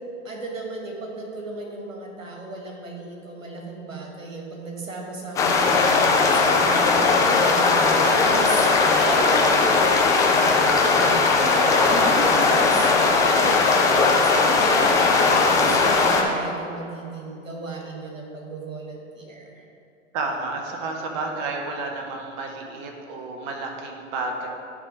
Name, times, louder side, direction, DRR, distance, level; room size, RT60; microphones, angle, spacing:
voice 1, 0.2-7.8 8.3-8.7 9.0-12.9 13.3-13.6 13.8-19.7, right 2 dB, 80° right, 0 dB, 1.7 m, -35 dB
sound 1, 5.4-16.2, left 4 dB, 10° left, 0.3 m, -18 dB
voice 2, 11.7-12.5 20.1-24.5, right 3 dB, 40° right, 2 dB, 1.1 m, -31 dB
11.0 x 3.7 x 4.9 m, 2.6 s
figure-of-eight pair, 100°, 38 cm